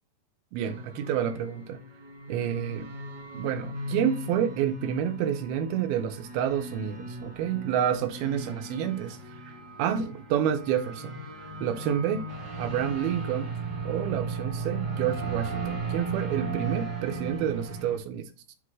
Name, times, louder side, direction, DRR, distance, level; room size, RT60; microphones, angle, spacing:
voice 1, 0.5-1.8 2.3-2.9 3.3-12.3 12.6-13.5 13.8-18.6, right 9 dB, 80° right, 2.5 m, -29 dB
sound 1, 0.7-18.0, right 3 dB, 45° right, 1.4 m, -36 dB
10.5 x 3.7 x 3.1 m
omnidirectional pair, 4.5 m